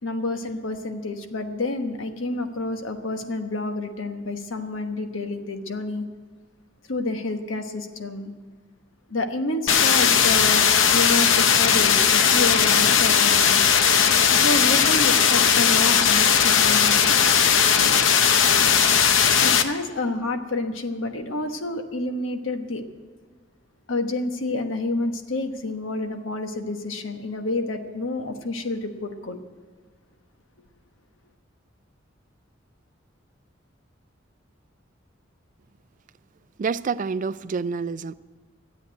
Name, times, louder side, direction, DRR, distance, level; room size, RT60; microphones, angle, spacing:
voice 1, 0.0-6.0 6.9-8.3 9.1-13.6 14.3-17.3 19.4-22.8 23.9-29.4, left 2 dB, 85° left, 1.2 m, -29 dB
sound 1, 9.7-19.6, left 7 dB, 70° left, 0.8 m, -18 dB
voice 2, 36.6-38.1, right 5 dB, 40° right, 0.4 m, -27 dB
13.0 x 8.3 x 9.2 m
head